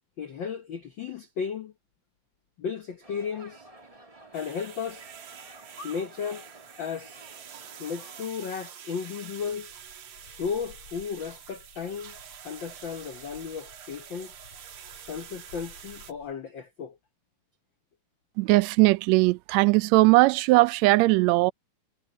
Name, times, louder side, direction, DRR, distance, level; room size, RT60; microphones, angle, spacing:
voice 1, 0.2-1.7 2.6-3.7 4.3-5.1 5.8-6.5 6.8-7.3 7.8-9.7 10.4-12.2 12.4-14.3 15.1-17.0, left 6 dB, 85° left, 1.0 m, -34 dB
sound 1, 3.0-8.2, right 1 dB, 15° right, 1.5 m, -50 dB
sound 2, 4.3-16.1, right 9 dB, 55° right, 1.7 m, -47 dB
sound 3, 9.4-16.3, left 6 dB, 55° left, 3.9 m, -55 dB
voice 2, 18.4-21.5, right 22 dB, 80° right, 1.6 m, -19 dB
omnidirectional pair, 3.6 m